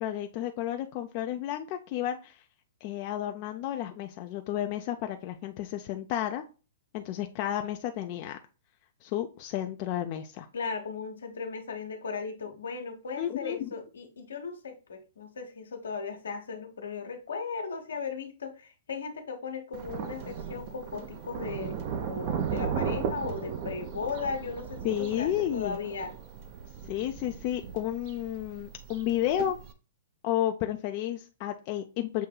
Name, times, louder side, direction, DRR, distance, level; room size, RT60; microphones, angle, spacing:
voice 1, 0.0-2.4 2.8-6.4 6.9-8.4 9.0-10.5 13.2-13.7 24.8-25.8 26.9-29.6 30.2-32.3, left 12 dB, 45° left, 5 dB, 0.4 m, -32 dB
voice 2, 10.5-26.1, left 5 dB, 85° left, 4 dB, 1.1 m, -37 dB
Thunder, 19.7-29.7, right 7 dB, 45° right, 0.6 m, -36 dB
6.7 x 2.7 x 2.3 m, 0.33 s
hypercardioid pair, 125°, 0 cm